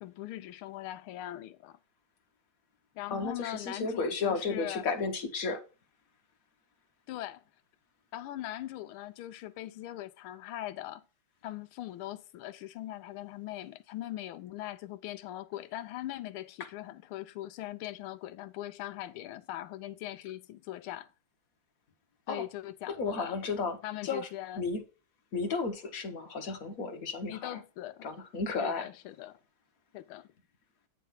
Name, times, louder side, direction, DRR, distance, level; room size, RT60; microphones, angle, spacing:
voice 1, 0.0-1.8 2.9-4.9 7.1-7.4 8.1-11.0 11.4-21.1 22.3-23.4 23.8-24.6 27.3-28.1 28.6-29.4 29.9-30.3, left 14 dB, 85° left, 1.5 m, -41 dB
voice 2, 3.1-5.6 22.3-22.5 23.0-23.8 24.0-24.3 24.6-24.8 25.3-27.6 28.0-28.9, left 4 dB, 50° left, 1.3 m, -33 dB
9.2 x 3.4 x 5.6 m
omnidirectional pair, 2.3 m